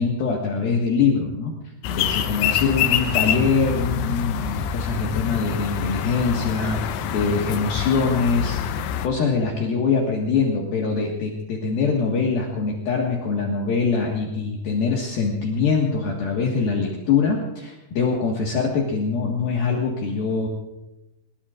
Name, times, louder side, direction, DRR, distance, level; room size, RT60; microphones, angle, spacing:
voice 1, 0.0-1.6 1.9-8.6 9.0-20.5, left 5 dB, 60° left, -2 dB, 3.2 m, -23 dB
sound 1, 1.8-9.1, left 9 dB, 80° left, 3.0 m, -26 dB
25.0 x 22.0 x 2.5 m, 0.96 s
omnidirectional pair, 5.4 m